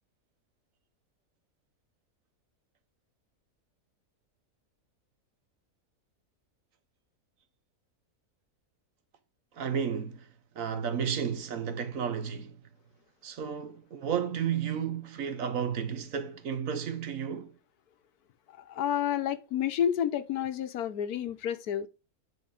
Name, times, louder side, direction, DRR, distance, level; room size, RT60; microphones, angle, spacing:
voice 1, 9.5-10.3 10.5-12.6 13.2-17.5, right 7 dB, 65° right, 1.2 m, -32 dB
voice 2, 18.5-21.9, left 9 dB, 80° left, 1.3 m, -30 dB
9.3 x 4.0 x 3.4 m
omnidirectional pair, 1.6 m